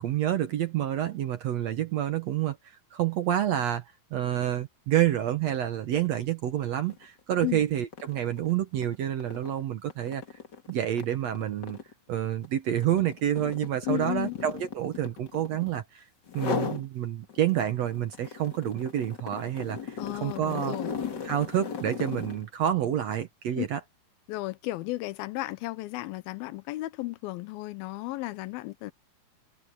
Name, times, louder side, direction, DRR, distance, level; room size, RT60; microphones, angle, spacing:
voice 1, 0.0-3.9 4.1-10.2 10.7-11.8 12.1-16.0 16.3-20.8 21.2-23.8, right 11 dB, 65° right, 1.7 m, -28 dB
sound 1, 6.8-7.0 7.4-15.8 16.3-16.9 17.3-22.5, left 6 dB, 35° left, 1.9 m, -37 dB
voice 2, 13.9-14.4 20.0-20.9 23.6-23.7 24.3-28.9, left 18 dB, 90° left, 2.6 m, -34 dB
omnidirectional pair, 4.2 m